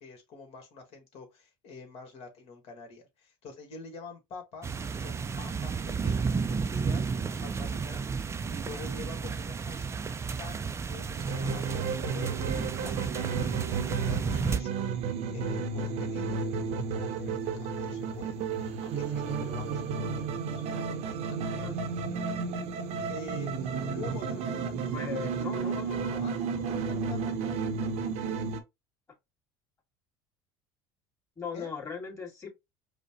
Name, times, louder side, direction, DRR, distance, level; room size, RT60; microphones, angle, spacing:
voice 1, 0.0-20.9 21.2-21.7 22.0-22.1 23.1-25.2 25.4-25.8 26.2-27.4 31.5-31.7, left 4 dB, 55° left, 1.7 m, -47 dB
sound 1, 4.6-14.6, right 5 dB, 20° right, 0.5 m, -32 dB
sound 2, 11.2-28.6, right 5 dB, 60° right, 0.8 m, -32 dB
voice 2, 24.9-26.2 31.4-32.5, left 6 dB, 25° left, 2.3 m, -39 dB
5.0 x 2.2 x 2.9 m
hypercardioid pair, 80°, 12 cm